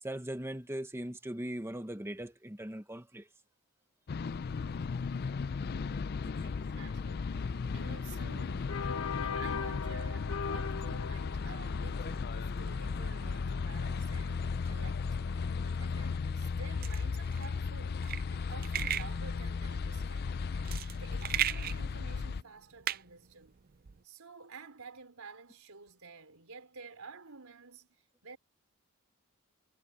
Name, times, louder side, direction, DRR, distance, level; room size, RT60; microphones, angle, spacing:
voice 1, 0.0-3.3 5.4-5.5 6.2-6.5, right 1 dB, 10° right, 1.1 m, -40 dB
sound 1, 4.1-22.4, left 5 dB, 45° left, 0.4 m, -36 dB
voice 2, 6.4-7.4 7.7-8.9 9.2-20.5 21.0-23.6 24.0-27.9 28.2-28.4, right 4 dB, 75° right, 3.9 m, -51 dB
sound 2, 7.3-16.2, left 5 dB, 65° left, 1.1 m, -42 dB
sound 3, 16.8-24.0, right 10 dB, 40° right, 0.5 m, -37 dB
head